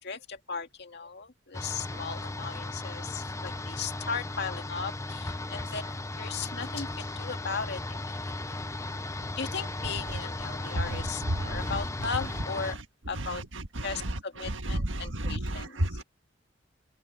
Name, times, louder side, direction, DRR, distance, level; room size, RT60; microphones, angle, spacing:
voice 1, 0.0-8.7 9.4-12.8 13.1-13.4 13.8-16.0, left 5 dB, 60° left, 2.0 m, -37 dB
sound 1, 1.5-12.7, left 2 dB, 15° left, 0.7 m, -36 dB
voice 2, 10.6-11.8 13.1-16.0, right 1 dB, 70° right, 1.7 m, -32 dB
open air
head